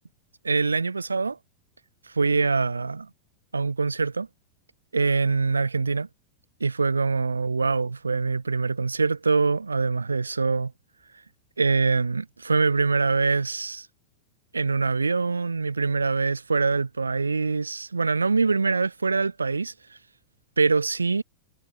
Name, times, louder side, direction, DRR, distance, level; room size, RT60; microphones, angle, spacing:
voice 1, 0.4-1.4 2.1-3.1 3.5-4.3 4.9-6.1 6.6-10.7 11.6-13.9 14.5-19.7 20.6-21.2, right 4 dB, 80° right, 0.6 m, -24 dB
figure-of-eight pair, 90°, 0 cm